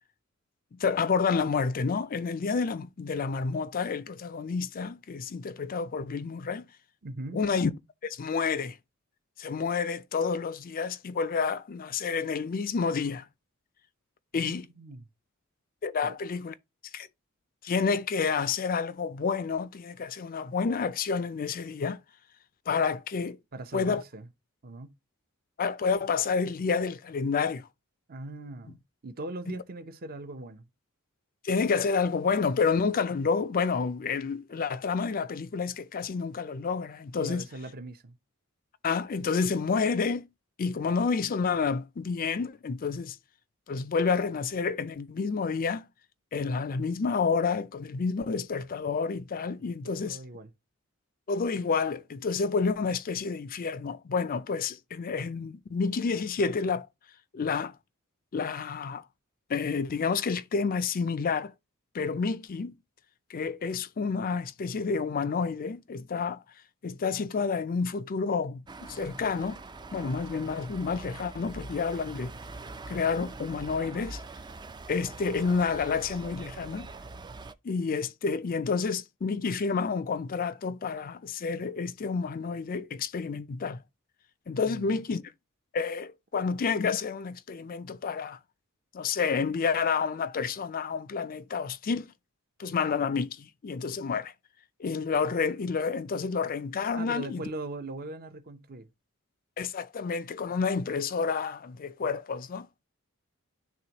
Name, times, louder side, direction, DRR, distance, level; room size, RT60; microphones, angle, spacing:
voice 1, 0.7-6.7 7.3-7.7 8.0-8.8 9.4-13.3 14.3-14.7 15.8-16.5 16.9-17.1 17.6-22.0 22.7-23.4 23.7-24.0 25.6-27.7 31.4-37.4 38.8-40.3 40.6-43.2 43.7-45.9 46.3-50.2 51.3-56.9 57.3-57.7 58.3-59.0 59.5-61.5 61.9-62.7 63.3-66.4 66.8-69.6 69.9-72.3 72.9-74.2 74.9-76.9 77.6-83.8 84.5-85.2 85.7-88.4 88.9-92.1 92.6-94.3 94.8-97.4 99.6-102.9, left 5 dB, 40° left, 0.4 m, -29 dB
voice 2, 7.0-7.4 14.3-15.1 16.0-16.2 23.5-24.3 24.6-24.9 28.1-30.7 37.2-38.2 50.0-50.5 84.6-85.0 96.9-98.9, right 2 dB, 45° right, 0.7 m, -40 dB
sound 1, 68.7-77.5, right 3 dB, 20° right, 0.4 m, -43 dB
10.5 x 3.5 x 2.9 m
head